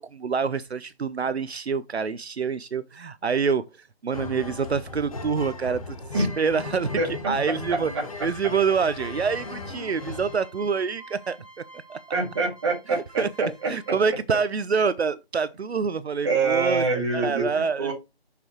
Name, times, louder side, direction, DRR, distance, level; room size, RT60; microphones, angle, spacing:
voice 1, 0.0-3.6 4.0-6.9 7.3-7.9 8.2-11.4 11.9-12.0 13.2-13.3 13.7-16.8 17.1-17.9, right 5 dB, 80° right, 0.7 m, -26 dB
sound 1, 4.1-10.4, left 3 dB, 35° left, 1.3 m, -37 dB
voice 2, 7.0-8.3 12.1-13.9 16.2-17.9, right 3 dB, 25° right, 2.4 m, -26 dB
sound 2, 9.0-14.2, right 2 dB, 5° right, 4.5 m, -50 dB
6.9 x 6.8 x 3.0 m
figure-of-eight pair, 165°, 32 cm